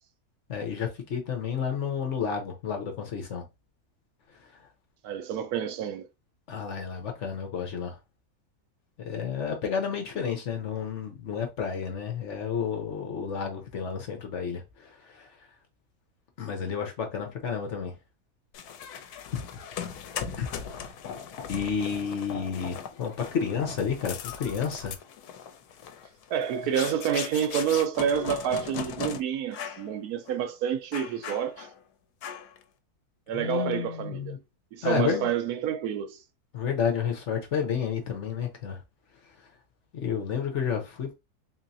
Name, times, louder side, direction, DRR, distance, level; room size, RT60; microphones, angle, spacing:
voice 1, 0.5-3.4 4.4-4.5 6.5-8.0 9.0-15.5 16.4-17.9 19.3-19.4 20.4-20.5 20.8-20.9 21.5-25.0 33.3-34.4 34.8-35.3 36.5-38.8 39.2-39.5 39.9-41.1, left 7 dB, 55° left, 1.0 m, -31 dB
voice 2, 5.0-6.1 26.3-31.7 33.3-34.4 34.7-36.2, right 8 dB, 75° right, 1.1 m, -28 dB
sound 1, 18.5-29.2 29.5-29.9 30.3-30.4 30.9-31.8 32.2-32.6, left 8 dB, 80° left, 1.1 m, -38 dB
3.8 x 2.9 x 2.7 m
omnidirectional pair, 1.6 m